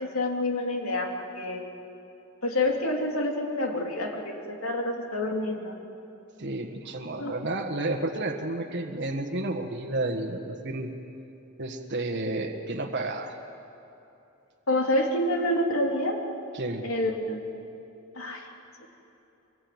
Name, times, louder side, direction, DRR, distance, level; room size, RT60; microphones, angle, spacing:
voice 1, 0.0-1.6 2.4-5.8 7.2-7.3 14.7-16.2 16.8-17.4 18.1-18.5 18.8-18.9, left 1 dB, 75° left, 1 dB, 3.3 m, -28 dB
voice 2, 6.4-10.9 11.6-13.4 16.5-16.9, right 2 dB, 55° right, 3 dB, 1.6 m, -31 dB
24.5 x 23.0 x 9.5 m, 2.9 s
head